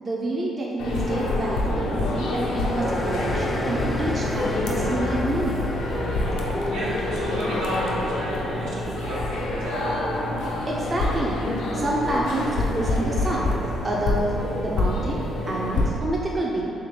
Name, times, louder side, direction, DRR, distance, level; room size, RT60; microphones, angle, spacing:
voice 1, 0.0-5.7 10.7-11.4 11.7-13.5 13.8-14.3 14.6-16.7, right 1 dB, 40° right, -4 dB, 0.5 m, -28 dB
sound 1, 0.8-15.9, left 2 dB, 80° left, 0.5 m, -26 dB
sound 2, 2.5-9.6, left 2 dB, 15° left, 0.4 m, -33 dB
voice 2, 6.1-9.9, equal, 80° right, -8 dB, 1.0 m, -33 dB
3.5 x 3.3 x 3.1 m, 2.9 s
hypercardioid pair, 50°, 0 cm